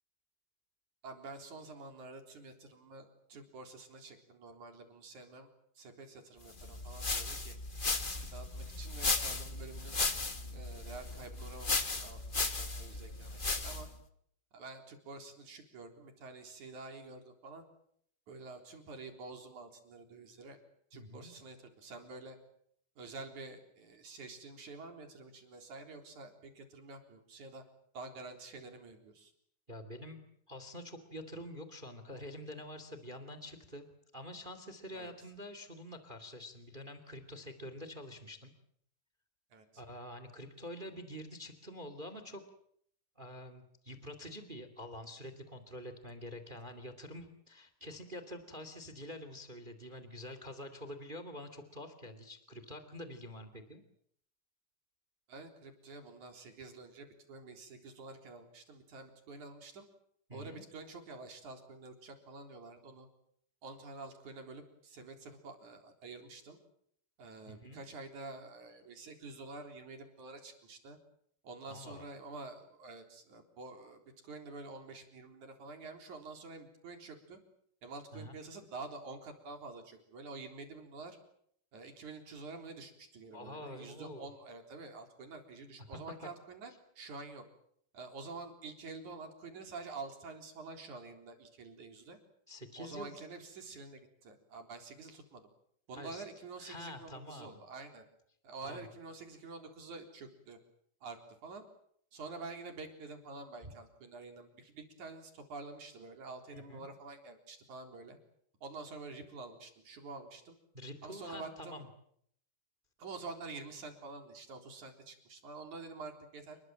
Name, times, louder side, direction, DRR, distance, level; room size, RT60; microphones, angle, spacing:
voice 1, 1.0-5.5 5.8-7.6 8.0-10.0 10.5-13.9 14.5-17.7 18.3-20.6 20.9-22.4 23.0-27.6 27.9-29.3 34.9-35.1 39.5-39.7 55.3-59.9 60.3-63.1 63.6-66.6 67.2-71.0 71.4-77.4 77.8-81.2 81.7-87.4 87.9-92.2 92.8-95.5 95.9-98.0 98.4-100.6 101.0-101.7 102.1-108.2 108.6-110.6 111.0-111.8 113.0-116.6, right 3 dB, 65° right, 4 dB, 5.2 m, -48 dB
sound 1, 6.6-14.0, left 3 dB, 25° left, 1.1 m, -36 dB
voice 2, 20.9-21.3 29.7-33.9 34.1-38.5 39.8-42.4 43.2-53.8 60.3-60.6 67.5-67.8 71.7-72.0 78.1-78.4 83.3-84.3 85.8-86.0 86.7-86.8 92.5-93.1 95.9-96.2 96.6-97.6 98.6-98.9 103.6-103.7 106.5-106.8 110.7-111.9, left 1 dB, 15° right, 10 dB, 2.3 m, -47 dB
29.0 x 22.0 x 7.7 m, 0.69 s
omnidirectional pair, 3.6 m